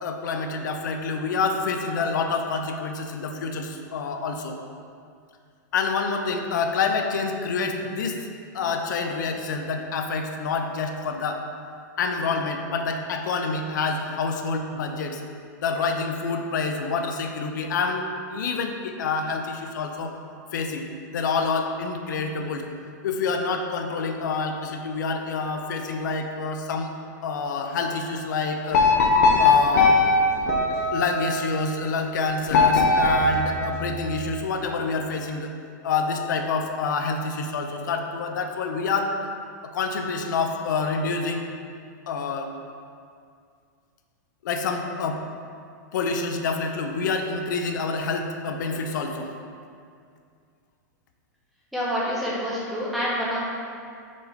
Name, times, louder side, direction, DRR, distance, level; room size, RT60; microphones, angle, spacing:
voice 1, 0.0-4.6 5.7-8.3 8.5-11.4 12.0-15.2 15.6-20.2 20.5-22.6 23.0-26.9 27.2-28.8 29.4-30.0 30.9-35.5 35.8-39.1 39.6-41.4 42.1-42.5 44.4-45.2 45.9-49.3, left 4 dB, 80° left, 4 dB, 0.6 m, -27 dB
sound 1, 28.7-31.4 32.5-34.3, left 3 dB, 55° left, 0.9 m, -20 dB
voice 2, 51.7-53.4, equal, ahead, -8 dB, 1.2 m, -27 dB
5.3 x 3.9 x 5.0 m, 2.3 s
supercardioid pair, 160°, 10 cm